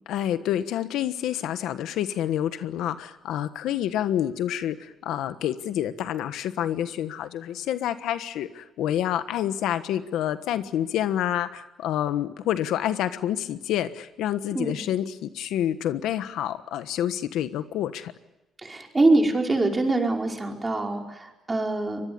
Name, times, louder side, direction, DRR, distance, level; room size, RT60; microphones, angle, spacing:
voice 1, 0.1-18.1, left 11 dB, 85° left, 11 dB, 1.3 m, -28 dB
voice 2, 18.6-22.0, right 2 dB, 20° right, 2 dB, 5.0 m, -24 dB
24.5 x 21.0 x 9.6 m, 0.99 s
cardioid pair, 90°, 0 cm